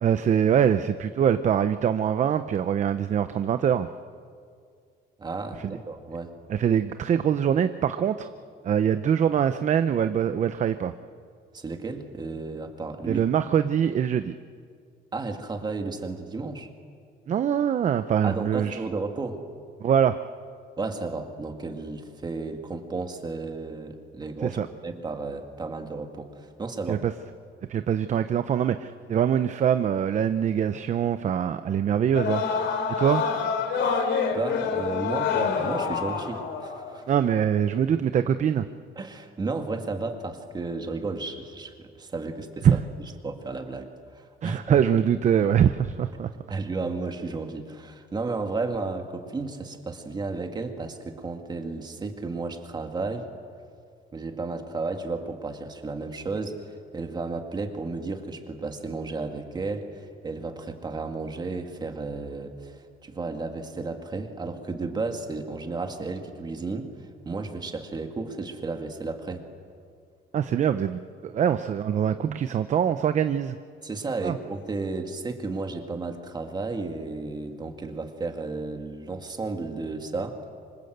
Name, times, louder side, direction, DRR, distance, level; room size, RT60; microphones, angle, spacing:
voice 1, 0.0-3.9 5.6-5.8 6.5-8.3 8.6-10.9 13.1-14.3 17.3-18.8 19.8-20.2 24.4-24.7 26.9-27.1 27.7-32.4 33.0-33.3 37.1-38.7 42.6-42.8 44.4-46.3 70.3-73.6 74.2-74.4, right 8 dB, 40° right, 10 dB, 0.7 m, -23 dB
voice 2, 5.2-6.3 11.5-13.2 15.1-16.7 18.2-19.4 20.8-24.6 24.8-27.0 33.9-34.0 34.3-37.1 39.0-42.8 43.2-44.8 46.5-53.3 54.1-69.4 73.8-80.4, right 3 dB, 20° right, 5 dB, 2.1 m, -33 dB
sound 1, 32.1-36.9, left 6 dB, 80° left, 3.1 m, -27 dB
26.0 x 25.5 x 8.0 m, 2.2 s
cardioid pair, 170°, 19 cm